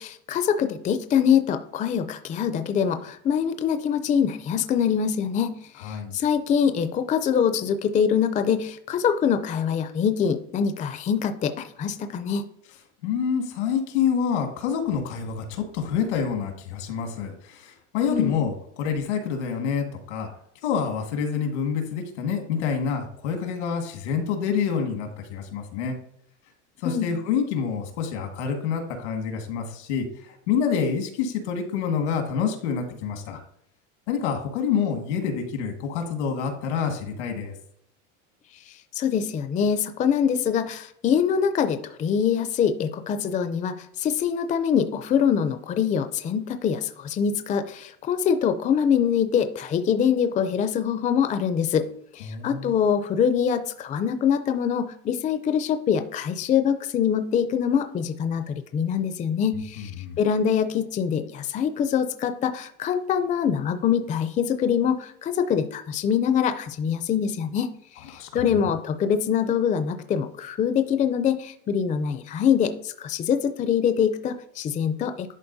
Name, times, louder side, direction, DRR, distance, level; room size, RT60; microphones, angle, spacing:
voice 1, 0.0-12.4 18.1-18.4 26.8-27.1 38.7-51.9 52.1-59.9 60.2-67.7 68.1-75.3, left 7 dB, 20° left, 9 dB, 0.4 m, -24 dB
voice 2, 5.8-6.2 13.0-20.3 20.6-25.9 26.8-33.4 34.1-37.5 52.2-52.7 59.8-60.2 68.1-68.4, left 6 dB, 90° left, 4 dB, 1.8 m, -27 dB
11.0 x 4.1 x 2.7 m, 0.71 s
supercardioid pair, 130°, 34 cm